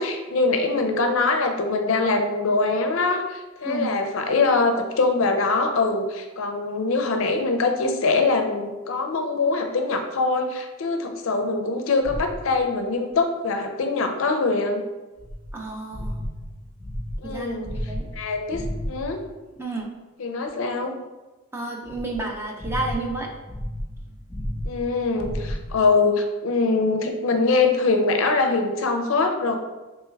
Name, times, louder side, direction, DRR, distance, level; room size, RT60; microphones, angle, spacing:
voice 1, 0.0-14.8 17.2-17.7 18.2-19.2 20.2-20.9 24.7-29.6, left 3 dB, 65° left, 5 dB, 0.4 m, -23 dB
voice 2, 3.6-3.9 15.5-16.3 17.2-18.1 19.6-19.9 21.5-23.3, right 2 dB, 10° right, 0 dB, 0.3 m, -31 dB
sound 1, 12.0-12.6 15.2-19.3 21.8-25.8, equal, 5° left, 1.4 m, -33 dB
3.3 x 3.1 x 3.2 m, 1.2 s
head